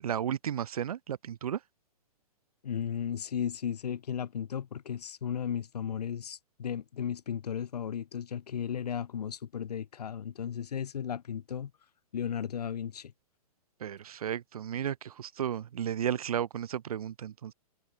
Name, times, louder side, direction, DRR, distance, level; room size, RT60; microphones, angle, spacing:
voice 1, 0.0-1.6 13.8-17.5, right 9 dB, 70° right, 1.2 m, -33 dB
voice 2, 2.6-11.7 12.1-13.1, left 8 dB, 90° left, 1.5 m, -35 dB
hypercardioid pair, 170°, 20 cm